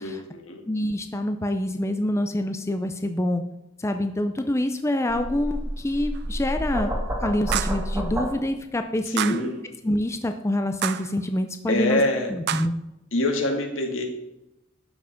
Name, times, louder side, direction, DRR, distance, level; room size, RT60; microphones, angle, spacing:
voice 1, 0.0-0.6 9.1-9.6 11.7-12.3 13.1-14.1, left 1 dB, 80° left, 3 dB, 1.8 m, -25 dB
voice 2, 0.7-3.4 3.8-6.9 7.2-9.4 9.8-12.0 12.3-12.7, left 1 dB, 15° left, 7 dB, 0.5 m, -26 dB
sound 1, 5.1-8.3, equal, 10° right, 1.9 m, -29 dB
sound 2, 6.1-6.2 7.5-7.9 9.2-9.5 10.8-11.1 12.5-12.7, right 10 dB, 55° right, 0.4 m, -28 dB
12.0 x 5.7 x 5.1 m, 0.89 s
head